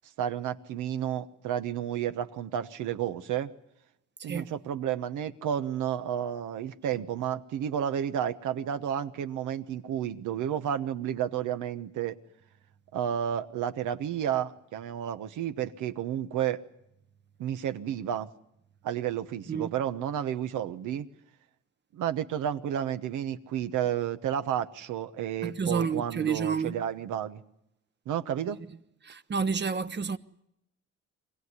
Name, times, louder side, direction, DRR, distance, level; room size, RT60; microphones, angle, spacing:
voice 1, 0.2-3.5 4.2-12.2 12.9-16.6 17.4-18.3 18.8-21.1 21.9-27.4 28.1-28.6, right 9 dB, 85° right, 1.2 m, -31 dB
voice 2, 4.2-4.5 19.5-19.7 25.4-26.8 29.0-30.2, right 6 dB, 35° right, 1.0 m, -30 dB
24.5 x 16.5 x 9.7 m
cardioid pair, 90°, 30 cm